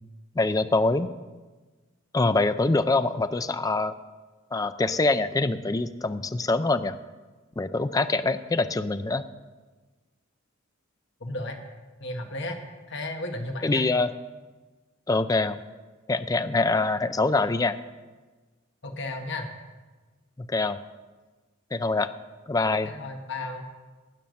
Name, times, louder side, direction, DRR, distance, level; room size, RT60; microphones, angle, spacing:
voice 1, 0.4-1.1 2.1-3.9 4.5-6.9 7.6-9.2 13.6-14.1 15.1-15.6 16.1-17.8 20.4-20.8 21.7-22.1 22.5-22.9, left 3 dB, 15° left, 11 dB, 0.4 m, -24 dB
voice 2, 11.2-11.6 12.0-12.6 12.9-13.8 18.8-19.5 22.8-23.6, left 2 dB, 60° left, 4 dB, 1.5 m, -34 dB
12.5 x 8.7 x 6.4 m, 1.3 s
head